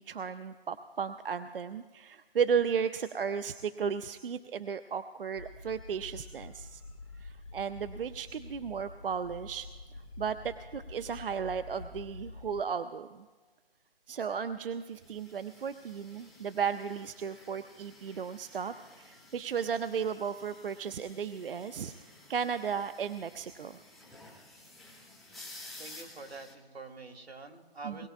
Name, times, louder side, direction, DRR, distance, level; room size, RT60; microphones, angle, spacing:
voice 1, 0.0-6.8 7.2-9.7 10.2-13.3 14.1-21.9 22.3-23.8 27.8-28.1, right 6 dB, 65° right, 11 dB, 0.5 m, -34 dB
sound 1, 5.4-12.6, left 2 dB, 35° left, 0.4 m, -47 dB
sound 2, 14.9-26.5, left 2 dB, ahead, 0.7 m, -53 dB
voice 2, 25.8-28.1, right 3 dB, 85° right, 3 dB, 2.0 m, -46 dB
21.0 x 16.5 x 2.4 m, 1.3 s
figure-of-eight pair, 160°, 30 cm